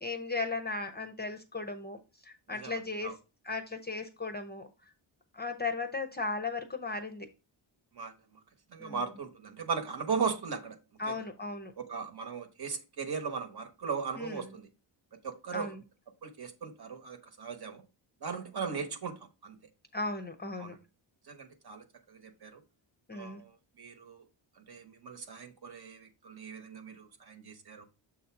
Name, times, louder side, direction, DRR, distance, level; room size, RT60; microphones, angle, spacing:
voice 1, 0.0-3.1 3.4-4.7 5.3-7.3 8.8-9.0 11.0-11.7 14.2-14.5 15.5-15.8 19.9-20.8 23.1-23.4, left 3 dB, 20° left, 0.6 m, -36 dB
voice 2, 2.5-3.1 7.9-8.1 8.7-10.8 11.1-11.2 11.8-14.7 15.2-15.7 16.2-17.8 18.2-19.6 20.6-20.8 21.3-22.6 23.1-23.5 23.8-24.2 24.6-27.9, right 5 dB, 50° right, 1.1 m, -38 dB
7.0 x 2.7 x 5.6 m
wide cardioid pair, 165°, 49 cm